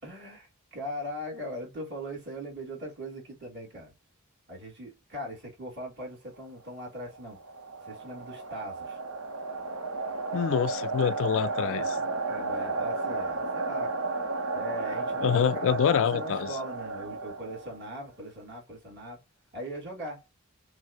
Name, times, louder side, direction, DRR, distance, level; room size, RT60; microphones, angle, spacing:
voice 1, 0.0-3.9 4.5-7.4 7.8-9.0 11.4-13.9 14.5-19.2 19.5-20.3, equal, 50° right, 2.9 m, -40 dB
sound 1, 7.1-18.0, right 3 dB, 70° right, 0.9 m, -33 dB
voice 2, 10.3-12.0 15.2-16.5, left 8 dB, 60° left, 0.3 m, -26 dB
6.1 x 2.1 x 2.6 m
head